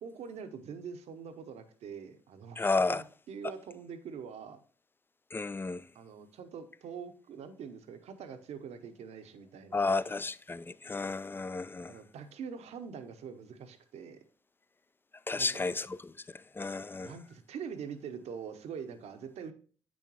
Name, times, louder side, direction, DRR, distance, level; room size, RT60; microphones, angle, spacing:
voice 1, 0.0-4.6 5.9-10.0 11.9-14.2 15.3-15.6 17.0-19.5, right 6 dB, 65° right, 0.8 m, -44 dB
voice 2, 2.6-3.0 5.3-5.8 9.7-11.9 15.3-15.9 16.6-17.1, left 3 dB, 20° left, 0.3 m, -32 dB
8.2 x 6.2 x 2.9 m
hypercardioid pair, 40°, 12 cm